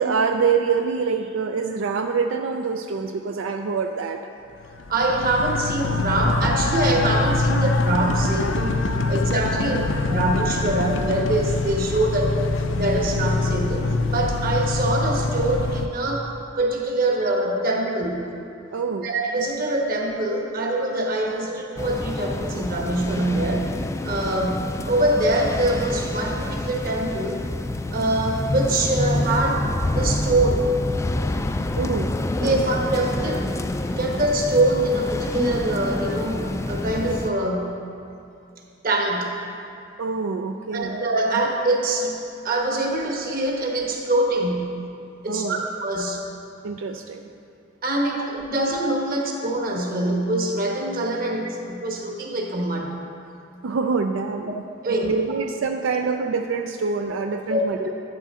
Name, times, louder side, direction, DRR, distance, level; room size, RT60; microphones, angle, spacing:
voice 1, 0.0-4.2 9.5-9.8 18.7-19.1 31.7-32.5 40.0-41.0 41.3-41.4 45.3-45.7 46.6-47.3 48.2-48.3 53.6-54.6 55.0-57.9, right 5 dB, 85° right, 5 dB, 0.4 m, -25 dB
sound 1, 4.6-15.9, left 3 dB, 75° left, 0.6 m, -24 dB
voice 2, 4.9-8.8 9.1-16.3 16.6-18.2 19.0-23.7 24.0-27.4 27.9-30.7 32.4-33.5 33.8-37.8 38.8-39.4 40.7-42.2 42.4-44.8 45.2-46.2 47.8-52.9 54.8-55.1 57.5-57.9, right 1 dB, 50° right, 0 dB, 1.3 m, -24 dB
sound 2, 21.8-37.3, left 2 dB, 15° left, 0.3 m, -27 dB
12.0 x 8.2 x 3.7 m, 2.5 s
head